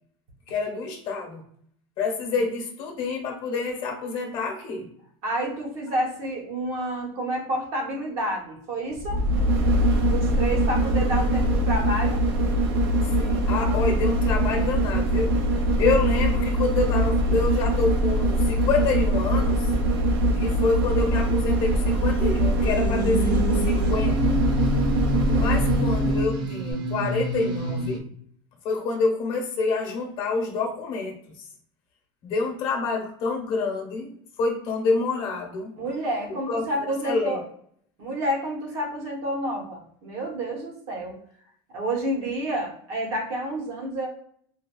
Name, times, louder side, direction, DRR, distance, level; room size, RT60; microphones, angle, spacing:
voice 1, 0.5-1.4 2.0-4.9 13.0-15.4 15.8-19.7 20.4-24.3 25.3-28.0 28.6-31.2 32.2-34.1 34.4-35.7 36.5-36.6 37.0-37.4, left 4 dB, 45° left, 2 dB, 0.9 m, -27 dB
voice 2, 5.2-9.2 10.1-12.2 35.8-37.4 38.0-41.1 41.7-44.1, right 1 dB, 55° right, 0 dB, 1.1 m, -29 dB
sound 1, 8.9-26.3 26.7-26.8, right 1 dB, 80° right, 0.6 m, -22 dB
sound 2, 22.6-28.0, right 1 dB, 40° right, 0.4 m, -27 dB
3.3 x 2.3 x 2.3 m, 0.65 s
supercardioid pair, 155°, 12 cm